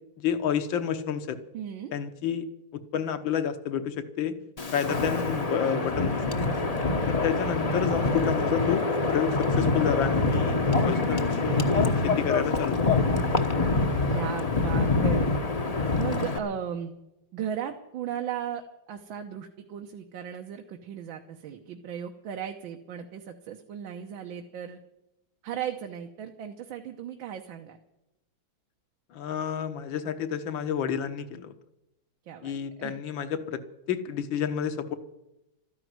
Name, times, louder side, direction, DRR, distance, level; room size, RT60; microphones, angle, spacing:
voice 1, 0.2-1.4 1.9-2.5 2.7-4.4 4.7-6.5 7.1-12.9 29.1-31.6 32.4-33.6 33.9-34.9, left 8 dB, 70° left, 10 dB, 1.8 m, -30 dB
voice 2, 1.5-1.9 6.4-7.2 7.6-7.8 14.1-15.2 16.0-16.9 17.3-24.8 25.4-27.8 32.3-33.0, right 9 dB, 75° right, 4 dB, 1.8 m, -36 dB
Wind, 4.6-16.4, left 3 dB, 30° left, 0.7 m, -25 dB
13.5 x 10.5 x 9.4 m, 0.90 s
omnidirectional pair, 2.2 m